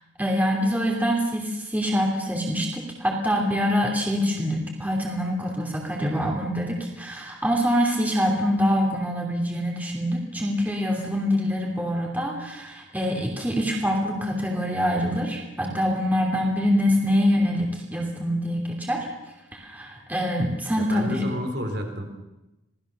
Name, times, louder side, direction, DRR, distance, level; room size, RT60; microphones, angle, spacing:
voice 1, 0.2-19.1 19.5-21.2, equal, 10° right, 0 dB, 2.9 m, -25 dB
voice 2, 20.8-22.0, equal, 55° right, 4 dB, 4.2 m, -30 dB
27.5 x 19.0 x 6.8 m, 0.98 s
head